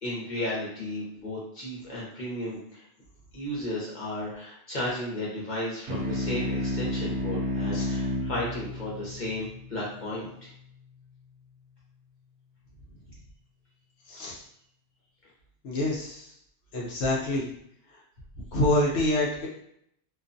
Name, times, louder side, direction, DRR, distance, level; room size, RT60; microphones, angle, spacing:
voice 1, 0.0-2.8 3.3-10.5, left 1 dB, 45° left, -6 dB, 1.0 m, -34 dB
sound 1, 5.9-10.7, left 1 dB, 70° right, 0.9 m, -32 dB
voice 2, 14.1-14.4 15.6-16.3 16.7-17.5 17.9-18.0 18.5-19.5, left 1 dB, 75° left, -4 dB, 0.9 m, -26 dB
2.4 x 2.2 x 2.5 m, 0.72 s
omnidirectional pair, 1.2 m